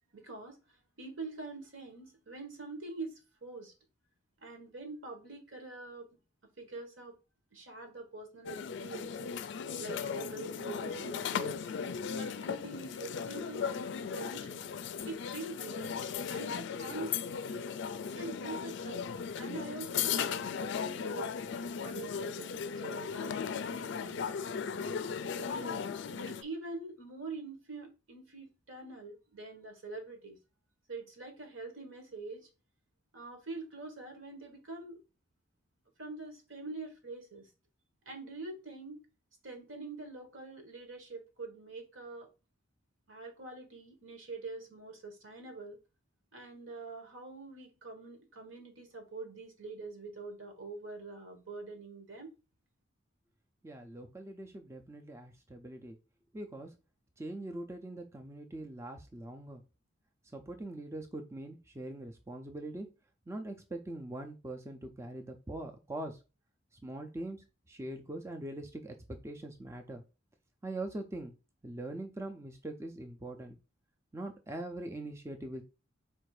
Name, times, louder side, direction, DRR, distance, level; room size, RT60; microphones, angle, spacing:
voice 1, 0.1-3.7 4.4-6.2 6.6-7.2 7.5-9.3 9.8-11.6 12.1-13.7 14.1-14.7 15.0-15.9 16.3-17.1 17.4-17.8 18.1-19.0 19.3-21.4 21.7-24.3 25.3-30.4 30.9-32.5 33.1-35.0 36.0-37.5 38.0-39.0 39.4-42.3 43.1-45.8 46.3-52.3, right 3 dB, 75° right, 1.5 m, -45 dB
sound 1, 8.4-26.4, left 6 dB, 60° left, 0.4 m, -37 dB
voice 2, 53.6-56.0 56.3-56.7 57.2-59.6 60.3-62.9 63.3-66.2 66.8-70.0 70.6-71.3 71.6-73.6 74.1-75.6, right 1 dB, 15° right, 0.4 m, -42 dB
4.3 x 2.6 x 4.7 m
head